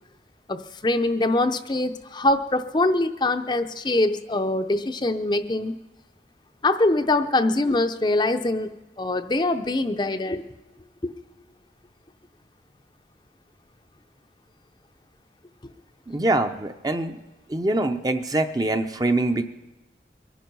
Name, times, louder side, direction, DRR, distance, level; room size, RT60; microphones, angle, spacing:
voice 1, 0.5-5.8 6.6-8.7 9.0-10.5 11.0-11.1, left 2 dB, 25° left, 8 dB, 0.5 m, -23 dB
voice 2, 16.1-17.1 17.5-19.4, right 2 dB, 20° right, 8 dB, 0.6 m, -24 dB
23.5 x 10.5 x 5.4 m, 1.1 s
head